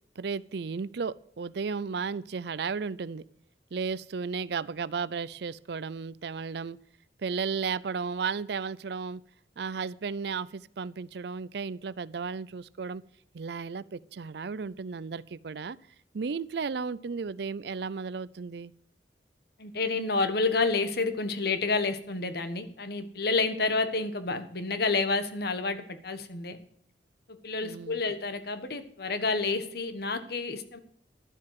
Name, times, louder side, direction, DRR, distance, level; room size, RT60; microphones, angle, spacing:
voice 1, 0.2-3.2 3.7-6.8 7.2-9.2 9.6-13.0 13.3-15.8 16.1-18.7 27.6-28.0, right 5 dB, 60° right, 20 dB, 0.5 m, -34 dB
voice 2, 19.6-26.6 27.3-30.8, left 3 dB, 55° left, 11 dB, 1.3 m, -29 dB
12.0 x 7.6 x 7.6 m, 0.66 s
head